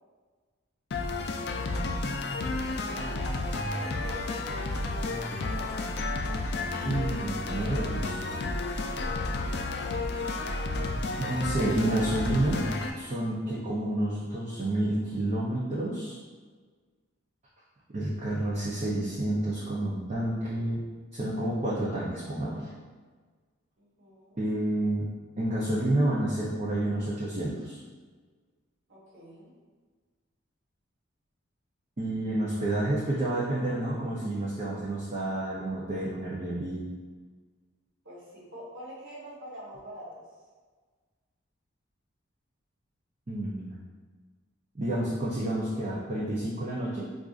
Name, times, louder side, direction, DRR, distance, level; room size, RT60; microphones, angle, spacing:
sound 1, 0.9-12.9, left 2 dB, 50° left, 0.3 m, -31 dB
voice 1, 2.7-5.9 23.8-24.4 28.9-29.5 38.0-40.2, equal, 65° right, -7 dB, 1.2 m, -45 dB
voice 2, 6.8-8.3 11.2-12.6 13.0-16.2 17.9-20.8 21.1-22.7 24.4-25.1 25.4-27.8 32.0-36.9 43.3-43.8 44.8-47.1, right 1 dB, 35° right, -7 dB, 0.5 m, -29 dB
4.9 x 2.4 x 2.4 m, 1.4 s
head